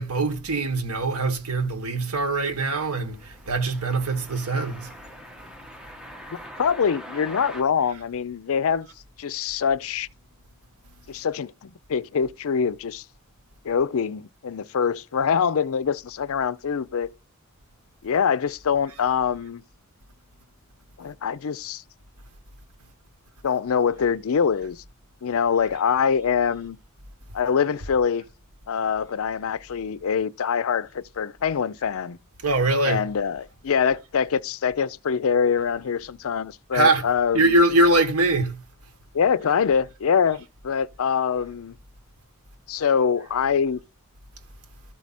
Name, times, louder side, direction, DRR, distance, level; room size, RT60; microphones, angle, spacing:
voice 1, 0.0-4.9 32.4-33.0 36.7-37.0 37.3-38.6, right 2 dB, 80° right, 1.4 m, -22 dB
sound 1, 3.0-7.6, equal, 5° right, 1.1 m, -42 dB
voice 2, 6.6-8.9 9.2-10.1 11.1-13.0 13.6-17.1 18.0-19.6 21.0-21.8 23.4-24.8 25.2-26.8 27.3-28.2 28.7-32.2 32.8-37.6 39.1-41.7 42.7-43.8, left 6 dB, 65° left, 0.5 m, -24 dB
13.0 x 4.8 x 4.1 m
head